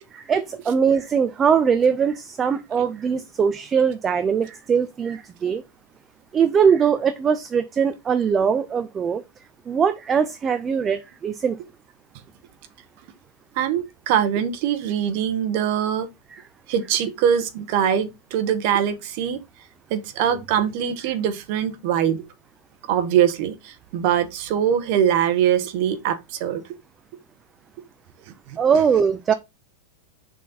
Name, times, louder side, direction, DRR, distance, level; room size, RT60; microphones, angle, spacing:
voice 1, 0.1-5.6 6.3-9.2 9.7-11.6 16.3-16.4 28.6-29.3, right 6 dB, 15° right, 0.4 m, -21 dB
voice 2, 13.5-16.1 16.7-19.4 19.9-22.2 22.9-26.6 28.5-28.6, right 9 dB, 45° right, 1.1 m, -22 dB
6.1 x 4.1 x 4.1 m
supercardioid pair, 160°, 0 cm